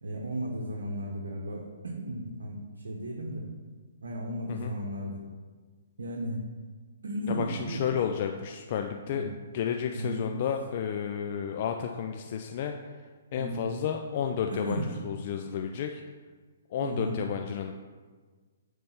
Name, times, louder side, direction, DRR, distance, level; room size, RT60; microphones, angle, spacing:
voice 1, 0.0-2.6 2.8-3.4 4.0-5.2 6.0-6.4 7.0-8.1 9.1-9.3 9.9-10.3 13.4-13.8 14.5-15.0 16.8-17.2, right 1 dB, 85° right, -1 dB, 0.9 m, -34 dB
voice 2, 7.3-9.2 9.5-12.7 13.3-16.0 16.7-17.7, left 8 dB, 45° left, 4 dB, 0.4 m, -31 dB
7.6 x 3.4 x 5.6 m, 1.4 s
hypercardioid pair, 140°, 0 cm